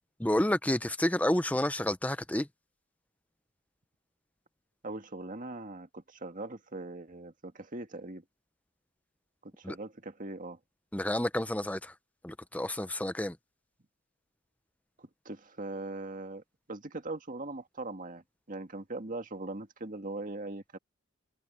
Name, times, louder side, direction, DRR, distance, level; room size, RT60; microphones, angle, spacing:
voice 1, 0.2-2.5 9.6-9.8 10.9-11.9 12.2-13.4, left 1 dB, 5° left, 0.7 m, -30 dB
voice 2, 4.8-8.2 9.4-10.6 15.0-16.4 16.7-20.8, right 2 dB, 40° right, 1.9 m, -40 dB
head